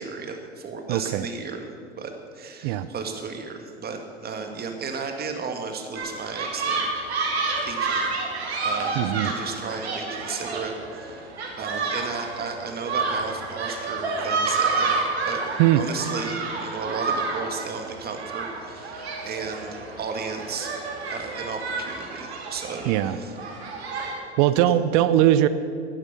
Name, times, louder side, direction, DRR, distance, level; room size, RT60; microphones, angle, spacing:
voice 1, 0.0-1.6 1.9-6.8 7.1-7.3 7.6-8.1 8.6-15.4 15.8-20.7 21.1-23.3 24.7-24.8, right 5 dB, 30° right, 5 dB, 1.9 m, -34 dB
voice 2, 0.9-1.3 2.6-2.9 8.9-9.3 15.6-15.8 22.9-23.2 24.4-25.5, right 13 dB, 55° right, 14 dB, 0.7 m, -20 dB
sound 1, 6.0-24.1, right 4 dB, 80° right, 2.5 m, -29 dB
11.5 x 9.9 x 7.1 m, 2.3 s
hypercardioid pair, 85°, 32 cm